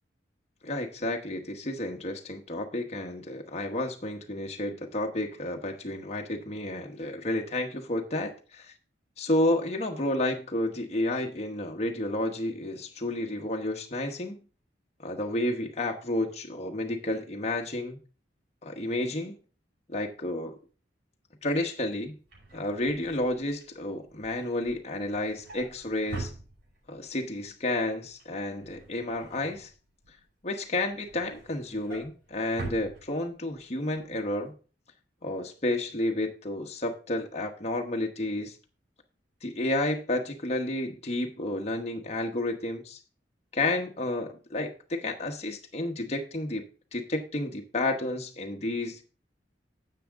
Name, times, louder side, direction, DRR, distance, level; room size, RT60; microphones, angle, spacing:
voice 1, 0.6-8.7 9.2-14.4 15.0-18.0 18.6-19.3 19.9-20.5 21.4-22.1 22.5-26.3 26.9-29.7 30.4-34.5 35.2-38.5 39.4-43.0 43.5-46.6 46.9-49.0, left 1 dB, 35° left, 2 dB, 1.0 m, -31 dB
Drawer open or close, 22.0-27.1 27.4-27.8 28.0-30.2 30.7-33.6 34.0-34.2 34.5-34.6, right 2 dB, 60° right, 5.4 m, -44 dB
10.0 x 7.7 x 3.6 m, 0.36 s
head